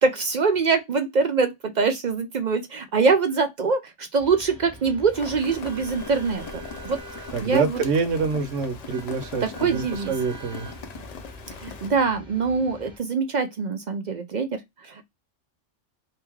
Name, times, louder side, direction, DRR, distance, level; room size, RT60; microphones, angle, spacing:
voice 1, 0.0-7.0 7.4-7.8 9.4-10.1 11.6-15.0, right 4 dB, 55° right, 0.5 m, -24 dB
sound 1, 4.2-13.0, equal, 5° right, 1.0 m, -43 dB
Rain, 5.1-11.9, left 5 dB, 70° left, 0.4 m, -41 dB
voice 2, 7.3-10.7, right 5 dB, 80° right, 1.0 m, -26 dB
3.1 x 2.8 x 3.4 m
omnidirectional pair, 1.2 m